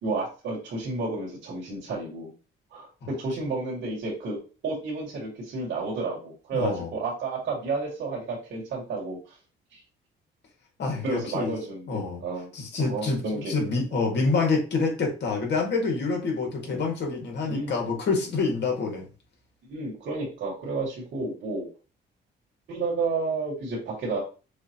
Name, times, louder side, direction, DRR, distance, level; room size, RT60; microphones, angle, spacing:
voice 1, 0.0-2.3 2.7-9.4 9.7-9.8 11.0-12.5 12.8-13.5 13.9-14.0 16.6-16.8 17.5-17.7 19.7-21.7 22.7-24.2, right 3 dB, 70° right, -5 dB, 2.4 m, -31 dB
voice 2, 6.5-6.9 10.8-11.5 11.9-12.2 12.5-13.2 13.5-19.1, left 4 dB, 60° left, 1 dB, 2.0 m, -27 dB
6.3 x 2.7 x 2.9 m, 0.33 s
cardioid pair, 90°, 20 cm